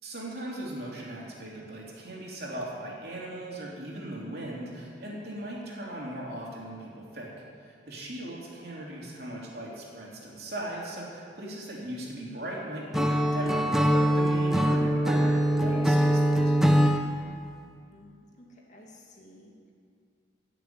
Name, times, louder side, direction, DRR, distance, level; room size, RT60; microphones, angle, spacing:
voice 1, 0.0-7.3 7.6-16.6, right 1 dB, 55° right, -4 dB, 3.2 m, -38 dB
Acoustic guitar / Strum, 12.9-17.0, right 1 dB, ahead, 0.8 m, -23 dB
voice 2, 17.9-19.7, left 1 dB, 40° left, -2 dB, 2.3 m, -54 dB
16.5 x 6.9 x 9.4 m, 2.3 s
head